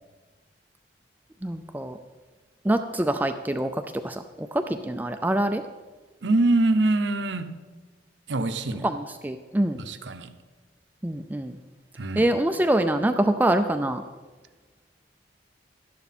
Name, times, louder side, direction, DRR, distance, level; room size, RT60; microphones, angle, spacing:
voice 1, 1.4-2.0 2.7-3.7 4.0-4.2 4.5-5.6 8.8-9.8 11.0-11.5 12.2-14.0, right 1 dB, 10° right, 7 dB, 0.4 m, -24 dB
voice 2, 6.2-7.5 8.3-8.9 9.8-10.3 12.0-12.3, right 2 dB, 70° right, 9 dB, 0.8 m, -24 dB
12.5 x 11.5 x 4.2 m, 1.3 s
head